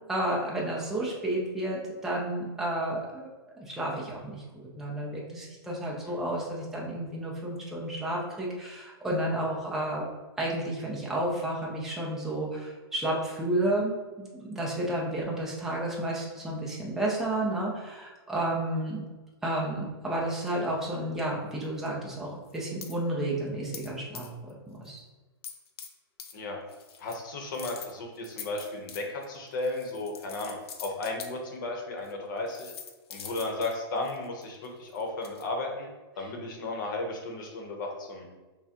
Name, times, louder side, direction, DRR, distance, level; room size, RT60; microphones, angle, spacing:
voice 1, 0.1-3.3 3.6-4.4 4.8-10.1 10.4-19.0 19.4-25.0, right 1 dB, 5° right, -4 dB, 0.5 m, -31 dB
sound 1, 22.5-23.0 23.7-23.9 24.1-24.5 24.9-25.0 25.4-25.9 26.2-26.3 26.7-27.2 27.5-31.3 32.0-32.1 32.5-35.5, left 7 dB, 70° left, 0.6 m, -44 dB
voice 2, 27.0-30.5 30.8-32.7 33.1-35.9 36.2-38.2, left 2 dB, 50° left, 2 dB, 0.9 m, -34 dB
5.7 x 2.2 x 2.8 m, 1.2 s
hypercardioid pair, 165°, 14 cm